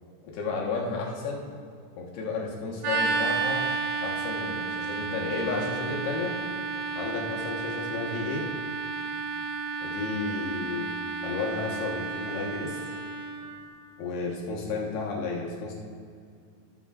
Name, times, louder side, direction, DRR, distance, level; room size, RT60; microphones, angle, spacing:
voice 1, 0.2-1.5 2.0-3.7 4.0-6.4 6.9-8.5 9.8-10.9 11.2-12.8 14.0-15.7, left 4 dB, 80° left, -2 dB, 3.4 m, -32 dB
sound 1, 2.8-13.4, right 4 dB, 75° right, 3.7 m, -32 dB
19.5 x 6.8 x 2.5 m, 2.3 s
omnidirectional pair, 4.6 m